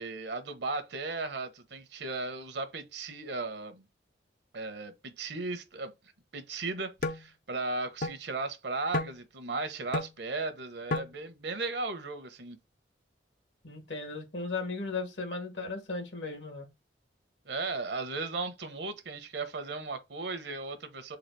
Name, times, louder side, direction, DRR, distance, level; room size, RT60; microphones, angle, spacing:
voice 1, 0.0-3.9 4.5-5.9 6.3-12.6 17.4-21.2, right 3 dB, 70° right, 0.9 m, -36 dB
sound 1, 7.0-7.2 8.0-8.1 8.9-9.2 9.9-10.1 10.9-11.1, left 2 dB, 45° left, 0.4 m, -31 dB
voice 2, 13.6-16.7, left 3 dB, 80° left, 1.7 m, -36 dB
4.0 x 2.4 x 4.6 m
head